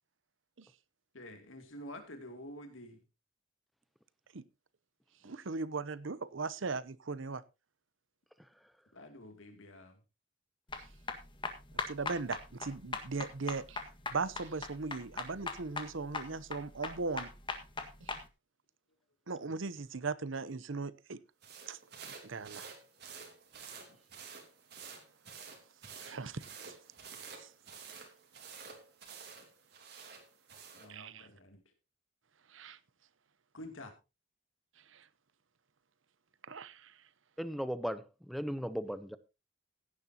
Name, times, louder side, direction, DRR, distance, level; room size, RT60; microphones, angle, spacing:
voice 1, 1.1-3.0 8.9-10.0 30.7-31.6 33.5-33.9, left 1 dB, 85° left, 2.6 m, -48 dB
voice 2, 5.2-7.4 11.9-17.3 18.0-18.1 19.3-21.2 21.7-22.7 26.0-26.7 27.4-27.5 30.9-31.3 32.5-32.8 34.9-35.1 36.5-37.0, right 4 dB, 80° right, 0.8 m, -39 dB
sound 1, 10.7-18.2, left 4 dB, 25° left, 1.6 m, -40 dB
sound 2, 21.4-30.9, right 6 dB, 55° right, 3.0 m, -50 dB
voice 3, 37.4-39.2, equal, ahead, 0.6 m, -37 dB
16.0 x 11.0 x 2.9 m
head